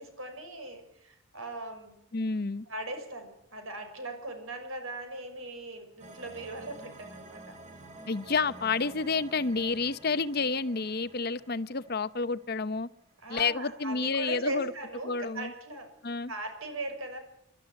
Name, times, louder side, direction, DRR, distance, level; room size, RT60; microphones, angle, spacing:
voice 1, 0.0-1.9 2.7-7.5 13.2-15.9 16.3-17.2, right 2 dB, 70° right, 6 dB, 6.3 m, -39 dB
voice 2, 2.1-2.7 8.1-12.9 13.3-14.7 15.0-15.5 16.0-16.3, left 4 dB, 45° left, 14 dB, 0.8 m, -30 dB
sound 1, 6.0-13.1, right 2 dB, 30° right, 3.7 m, -50 dB
27.5 x 13.0 x 9.3 m, 0.74 s
head